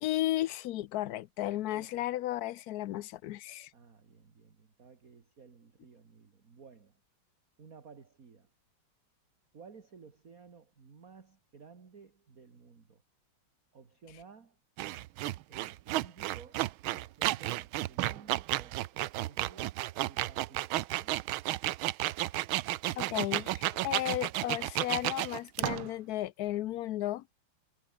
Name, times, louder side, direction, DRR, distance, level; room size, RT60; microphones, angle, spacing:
voice 1, 0.0-3.7 22.9-27.2, left 14 dB, 85° left, 0.8 m, -34 dB
voice 2, 1.7-2.1 3.7-6.9 7.6-8.5 9.5-13.0 13.7-14.6 15.5-19.8 20.0-21.2, right 5 dB, 40° right, 2.5 m, -55 dB
sound 1, 14.8-25.9, right 16 dB, 80° right, 1.5 m, -32 dB
omnidirectional pair, 2.3 m